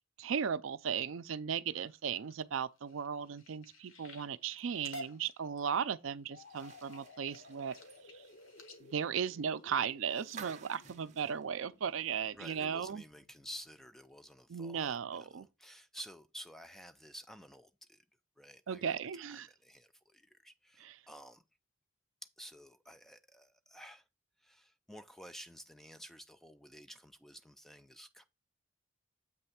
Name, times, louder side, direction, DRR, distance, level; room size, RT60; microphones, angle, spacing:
voice 1, 0.2-7.8 8.8-13.0 14.5-15.5 18.7-19.5 20.8-21.0, right 7 dB, 75° right, 0.4 m, -36 dB
sound 1, 1.7-10.4 10.9-11.3 11.7-12.1 12.5-12.6 12.9-13.0, left 1 dB, 80° left, 1.4 m, -53 dB
sound 2, 6.3-14.0, left 4 dB, 65° left, 0.8 m, -58 dB
sound 3, 6.4-12.4 12.8-12.9 14.2-14.3, right 6 dB, 35° right, 0.7 m, -54 dB
voice 2, 12.4-18.0 18.4-21.4 22.4-24.0 24.4-28.2, equal, ahead, 0.3 m, -52 dB
7.7 x 3.2 x 5.8 m
head